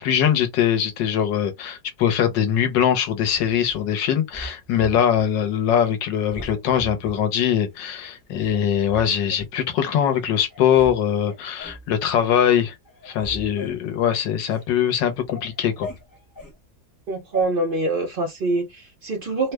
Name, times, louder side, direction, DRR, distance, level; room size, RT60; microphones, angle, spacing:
voice 1, 0.0-12.7 13.0-15.9, left 9 dB, 85° left, 1.4 m, -22 dB
sound 1, 3.2-3.9 4.3-5.3 5.7-5.9 6.3-7.2 7.8-7.9 8.4-9.5 10.1-10.2 10.5-11.0 11.2-11.9 12.3-12.6 12.8-14.7 15.0-16.6 17.3-17.5, equal, 15° left, 0.9 m, -40 dB
voice 2, 17.1-19.5, right 2 dB, 65° right, 0.5 m, -25 dB
3.3 x 2.1 x 3.3 m
omnidirectional pair, 1.9 m